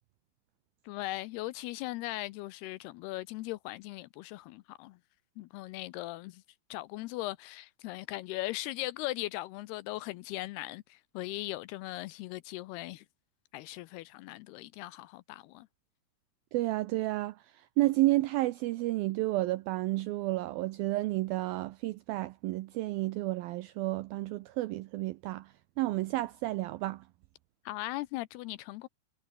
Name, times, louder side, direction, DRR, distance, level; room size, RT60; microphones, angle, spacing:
voice 1, 0.8-5.0 5.4-6.4 6.7-13.1 13.5-15.7 27.7-28.9, left 18 dB, 80° left, 2.5 m, -39 dB
voice 2, 16.5-27.0, right 18 dB, 85° right, 2.1 m, -31 dB
omnidirectional pair, 5.0 m